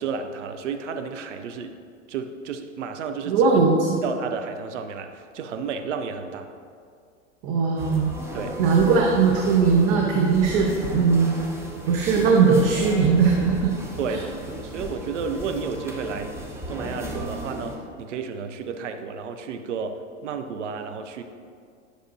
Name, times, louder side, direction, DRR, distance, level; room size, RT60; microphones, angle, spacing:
voice 1, 0.0-1.8 2.1-3.5 4.0-6.5 8.3-8.6 14.0-21.2, right 5 dB, 75° right, 7 dB, 0.6 m, -32 dB
voice 2, 3.3-4.0 7.4-8.1 8.6-11.3 11.9-13.7 14.1-14.2, right 5 dB, 50° right, 0 dB, 0.9 m, -19 dB
sound 1, 7.8-17.8, equal, 5° right, 0.9 m, -35 dB
9.9 x 6.4 x 2.6 m, 2.2 s
figure-of-eight pair, 90°, 37 cm